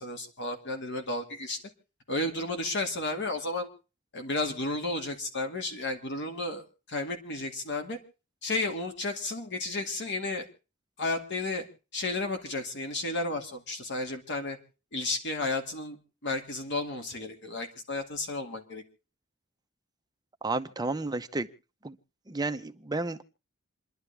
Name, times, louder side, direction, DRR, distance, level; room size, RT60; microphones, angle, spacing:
voice 1, 0.0-1.6 2.1-3.7 4.1-8.0 8.4-10.5 11.0-11.6 11.9-14.6 14.9-18.8, left 2 dB, 60° left, 2.4 m, -33 dB
voice 2, 20.4-21.5 21.8-22.0 22.3-23.2, right 2 dB, 20° right, 0.8 m, -32 dB
28.0 x 11.0 x 3.4 m
head